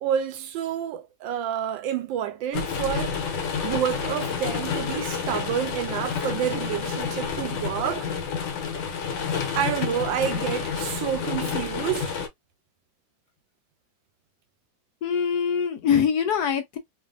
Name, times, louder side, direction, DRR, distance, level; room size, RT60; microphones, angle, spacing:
voice 1, 0.0-3.1 3.6-8.1 9.5-12.1, right 9 dB, 85° right, 1.3 m, -28 dB
sound 1, 2.5-12.3, left 6 dB, 85° left, 1.4 m, -29 dB
voice 2, 9.1-9.4 15.0-16.8, left 7 dB, 70° left, 1.1 m, -24 dB
3.1 x 2.4 x 2.4 m
omnidirectional pair, 2.0 m